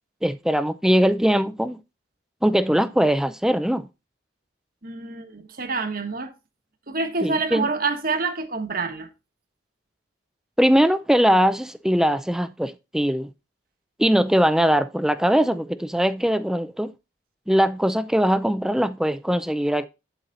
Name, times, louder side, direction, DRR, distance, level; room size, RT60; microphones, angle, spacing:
voice 1, 0.2-1.8 2.4-3.8 7.2-7.7 10.6-13.3 14.0-16.9 17.5-19.9, equal, 5° right, 0.5 m, -21 dB
voice 2, 4.8-6.3 6.9-9.1, right 4 dB, 50° right, 1.3 m, -27 dB
9.3 x 8.0 x 2.6 m
head